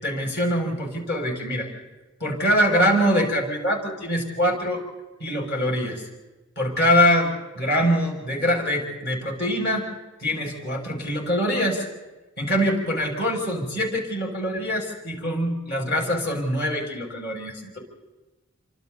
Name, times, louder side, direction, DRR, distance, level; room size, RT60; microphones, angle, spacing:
voice 1, 0.0-1.7 2.2-4.8 5.2-6.0 6.6-9.9 10.2-11.8 12.4-17.8, equal, 50° left, 0 dB, 6.7 m, -24 dB
29.0 x 25.5 x 4.1 m, 1.1 s
head